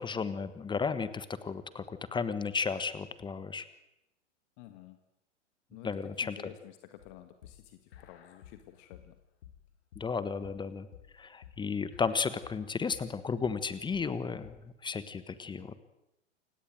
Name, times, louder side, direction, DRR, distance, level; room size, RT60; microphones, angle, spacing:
voice 1, 0.0-3.6 5.8-6.5 9.9-10.9 11.1-15.8, left 5 dB, 10° left, 14 dB, 1.3 m, -34 dB
voice 2, 4.6-5.0 5.7-9.2, left 13 dB, 40° left, 8 dB, 1.9 m, -51 dB
sound 1, 7.0-14.7, left 10 dB, 60° left, 2.9 m, -54 dB
29.0 x 17.5 x 9.1 m, 0.89 s
figure-of-eight pair, 100°, 36 cm